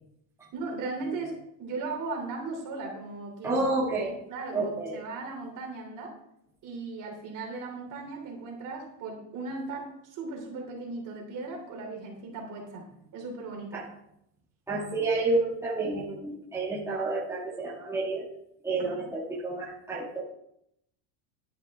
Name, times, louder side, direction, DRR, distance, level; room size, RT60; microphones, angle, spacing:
voice 1, 0.5-3.6 4.0-6.1 6.6-12.8 13.1-13.8 18.8-19.1, right 3 dB, 45° right, 1 dB, 3.3 m, -37 dB
voice 2, 3.4-4.2 4.5-5.0 13.7-13.9 14.7-18.2 18.6-20.2, right 2 dB, 5° right, -6 dB, 2.1 m, -29 dB
11.0 x 9.4 x 3.6 m, 0.77 s
cardioid pair, 150°, 43 cm